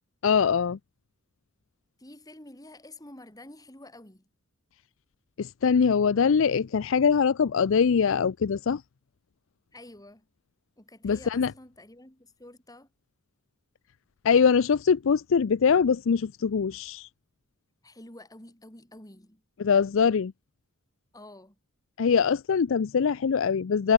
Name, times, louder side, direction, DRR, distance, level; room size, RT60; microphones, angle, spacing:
voice 1, 0.2-0.8 5.4-8.8 11.0-11.5 14.2-17.1 19.6-20.3 22.0-23.9, left 6 dB, 65° left, 0.4 m, -23 dB
voice 2, 2.0-4.3 9.7-10.3 10.8-12.9 17.8-19.4 21.1-21.6, left 1 dB, 15° left, 3.7 m, -49 dB
head